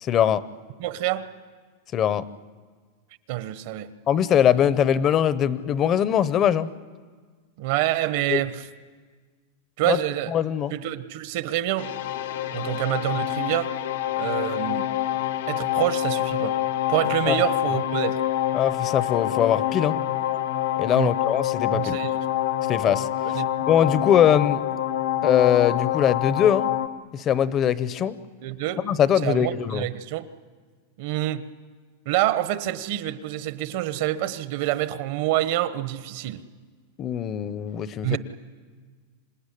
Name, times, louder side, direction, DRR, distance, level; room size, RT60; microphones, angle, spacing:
voice 1, 0.0-0.4 1.9-2.2 4.1-6.7 8.3-8.4 9.8-10.0 10.3-10.7 17.3-17.4 18.5-20.0 20.8-22.0 22.7-23.1 23.7-24.6 25.2-26.7 27.1-28.2 28.8-29.8 37.0-38.2, left 9 dB, 25° left, 16 dB, 0.7 m, -21 dB
voice 2, 0.8-1.3 3.3-3.9 7.6-8.6 9.8-10.3 10.7-11.9 12.5-13.7 14.2-14.9 15.5-16.5 16.9-18.2 20.9-21.1 21.7-22.2 23.3-23.5 28.4-28.8 29.2-30.3 31.0-31.4 32.0-36.4 38.0-38.2, right 14 dB, 55° right, 13 dB, 1.1 m, -27 dB
sound 1, 11.8-26.9, left 12 dB, 80° left, 1.1 m, -26 dB
26.5 x 18.0 x 10.0 m, 1.5 s
supercardioid pair, 160°, 0 cm